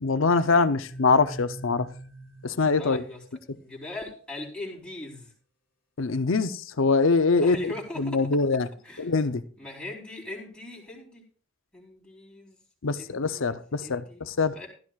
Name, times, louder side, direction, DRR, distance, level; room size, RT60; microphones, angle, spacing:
voice 1, 0.0-1.9 2.4-3.0 6.0-7.7 8.0-8.7 9.0-9.4 12.8-14.5, left 4 dB, 85° left, 0.7 m, -23 dB
sound 1, 0.8-3.6, right 1 dB, 45° left, 1.7 m, -44 dB
voice 2, 2.8-3.2 3.6-5.3 7.4-8.2 8.8-9.1 9.6-11.2 11.7-12.6 12.9-14.7, left 2 dB, 5° left, 4.1 m, -40 dB
15.5 x 13.0 x 2.4 m
head